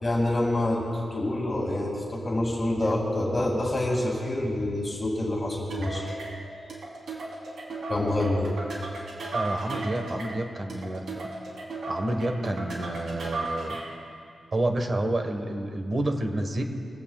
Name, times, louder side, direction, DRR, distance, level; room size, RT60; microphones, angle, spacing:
voice 1, 0.0-6.1 7.9-8.5, left 1 dB, 25° left, -2 dB, 2.5 m, -27 dB
sound 1, 5.7-14.0, right 2 dB, 65° right, 3.6 m, -35 dB
voice 2, 9.3-11.3 11.9-13.8 14.5-16.6, right 1 dB, 30° right, 5 dB, 1.4 m, -29 dB
23.5 x 16.5 x 2.4 m, 2.5 s
wide cardioid pair, 150°, 0 cm